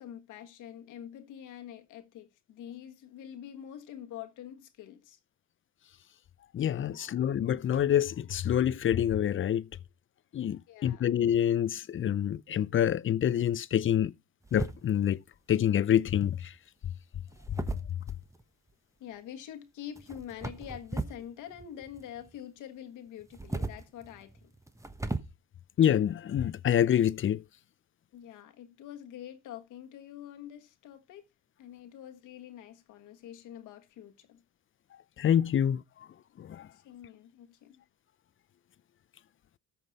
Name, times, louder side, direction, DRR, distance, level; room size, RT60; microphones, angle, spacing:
voice 1, 0.0-5.2 6.9-7.2 10.7-11.1 19.0-24.5 28.1-31.3 31.6-34.4 36.7-37.8, left 10 dB, 90° left, 1.5 m, -46 dB
voice 2, 6.5-9.7 10.3-14.1 14.5-15.2 15.5-16.5 25.8-27.4 35.2-35.8 36.4-36.7, left 10 dB, 40° left, 0.5 m, -26 dB
sound 1, 14.4-15.2 16.2-16.6 17.3-18.4 20.0-21.3 21.5-22.4 23.2-25.2, right 2 dB, 10° right, 1.1 m, -37 dB
13.5 x 6.0 x 4.1 m
cardioid pair, 90°, 30 cm